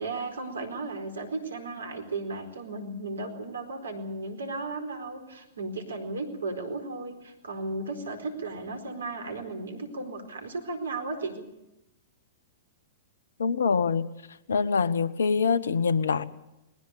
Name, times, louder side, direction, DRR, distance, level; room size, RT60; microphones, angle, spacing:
voice 1, 0.0-11.4, right 3 dB, 75° right, 6 dB, 4.4 m, -35 dB
voice 2, 13.4-14.1 14.5-16.2, left 5 dB, 75° left, 16 dB, 1.1 m, -24 dB
20.5 x 19.0 x 8.4 m, 0.91 s
figure-of-eight pair, 110°, 0 cm